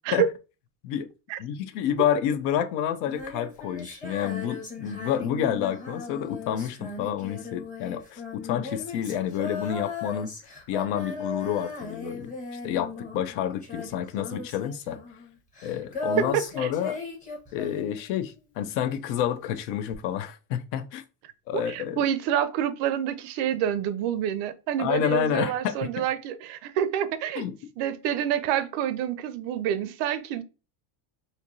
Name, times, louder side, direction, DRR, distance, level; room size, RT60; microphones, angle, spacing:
voice 1, 1.4-10.3 10.7-12.3 12.6-15.0 15.6-17.0 17.5-21.0 21.5-22.1 24.8-26.1 27.4-27.5, left 10 dB, 60° left, 0.6 m, -29 dB
Female singing, 3.0-18.4 19.9-20.0, left 3 dB, 15° left, 1.0 m, -37 dB
voice 2, 16.2-16.7 21.5-27.4 27.8-30.4, right 10 dB, 60° right, 0.6 m, -27 dB
4.4 x 2.7 x 2.6 m
cardioid pair, 145°, 47 cm